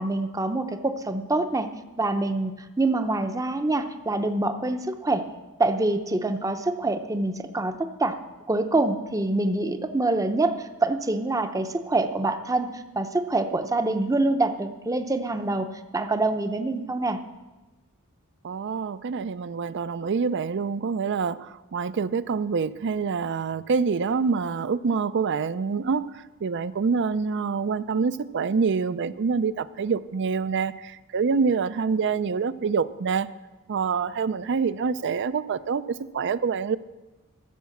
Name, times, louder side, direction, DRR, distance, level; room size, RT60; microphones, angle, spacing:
voice 1, 0.0-1.7 2.0-5.2 5.6-8.2 8.5-15.7 15.9-17.2, right 2 dB, 15° right, 8 dB, 0.6 m, -25 dB
voice 2, 18.4-26.1 26.4-33.3 33.7-35.8 36.1-36.8, right 5 dB, 55° right, 16 dB, 0.4 m, -26 dB
14.0 x 7.4 x 7.2 m, 1.1 s
head